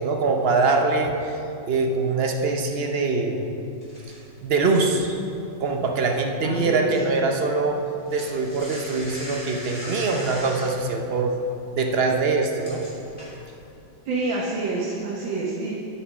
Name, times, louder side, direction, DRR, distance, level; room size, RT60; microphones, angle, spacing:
voice 1, 0.0-3.4 4.4-5.2 5.6-7.8 8.1-11.3 11.7-12.8, right 3 dB, 55° right, 3 dB, 0.6 m, -23 dB
sound 1, 3.8-6.5 6.8-7.1 7.4-13.7, equal, 25° left, 2.8 m, -40 dB
voice 2, 6.4-6.9 14.1-15.7, right 3 dB, 75° right, -4 dB, 1.8 m, -27 dB
8.8 x 7.8 x 6.0 m, 2.7 s
omnidirectional pair, 2.1 m